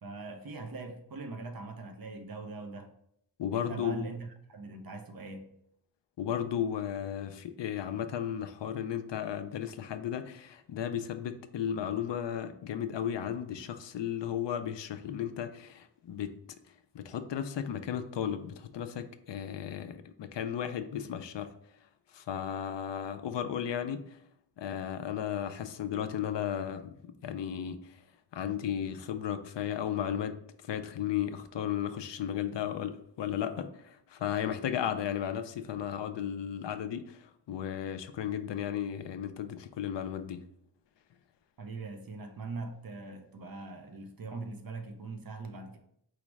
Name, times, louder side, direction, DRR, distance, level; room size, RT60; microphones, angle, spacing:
voice 1, 0.0-2.9 3.5-5.5 41.6-45.8, right 3 dB, 55° right, 0.7 m, -41 dB
voice 2, 3.4-4.0 6.2-16.3 16.9-21.5 22.1-24.2 24.6-26.9 27.2-28.0 28.3-30.4 30.6-40.4, left 9 dB, 80° left, 0.5 m, -34 dB
4.7 x 2.0 x 4.6 m
wide cardioid pair, 90°, 42 cm